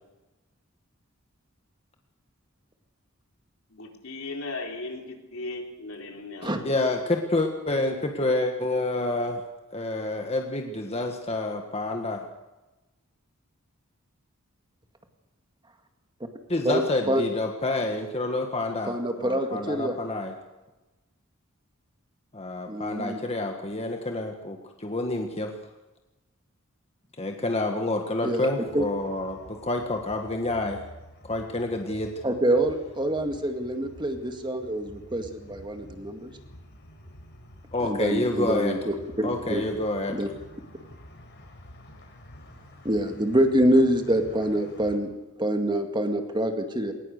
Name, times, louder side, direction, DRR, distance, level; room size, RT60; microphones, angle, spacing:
voice 1, 3.7-6.6, left 2 dB, 75° left, 3.8 m, -37 dB
voice 2, 6.6-9.4 9.7-12.2 16.5-20.3 22.3-25.5 27.2-30.8 31.2-32.2 37.7-38.7 39.2-40.1, left 2 dB, 30° left, 1.6 m, -28 dB
voice 3, 16.6-17.2 18.8-20.0 22.7-23.2 28.2-28.5 28.7-28.9 32.2-36.4 37.8-39.6 40.1-40.3 42.8-45.1 45.4-46.9, right 1 dB, 20° right, 2.0 m, -26 dB
sound 1, 28.7-45.0, equal, 55° left, 4.8 m, -49 dB
20.0 x 19.5 x 6.7 m
head